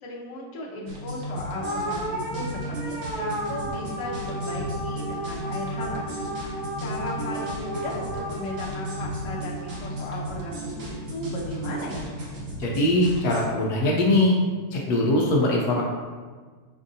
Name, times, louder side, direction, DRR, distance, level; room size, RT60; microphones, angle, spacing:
voice 1, 0.0-6.0 6.4-6.5 6.8-12.1, left 1 dB, 60° left, -3 dB, 1.0 m, -36 dB
sound 1, 0.9-13.4, right 1 dB, 60° right, 1.2 m, -34 dB
sound 2, 1.6-10.1, right 1 dB, 20° right, 0.9 m, -34 dB
voice 2, 12.6-14.4 14.7-15.8, left 1 dB, 80° left, -2 dB, 1.1 m, -21 dB
6.1 x 2.6 x 2.6 m, 1.5 s
omnidirectional pair, 1.7 m